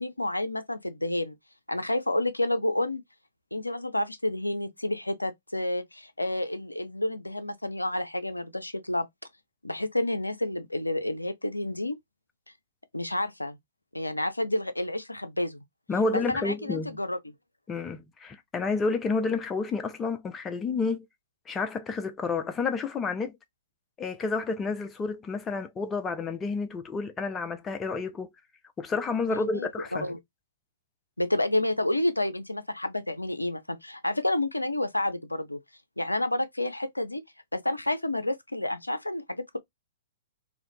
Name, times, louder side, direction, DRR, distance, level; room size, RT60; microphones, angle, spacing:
voice 1, 0.0-1.4 1.7-3.0 3.5-9.1 9.6-12.0 12.9-13.6 13.9-15.6 16.1-17.2 29.3-29.7 30.0-30.2 31.2-35.6 36.0-37.2 37.5-39.6, left 1 dB, 85° left, 0.4 m, -29 dB
voice 2, 15.9-17.0 17.7-21.1 21.5-23.4 24.0-28.3 28.8-30.1, left 4 dB, 15° left, 0.4 m, -30 dB
2.4 x 2.1 x 2.6 m
figure-of-eight pair, 115°, 0 cm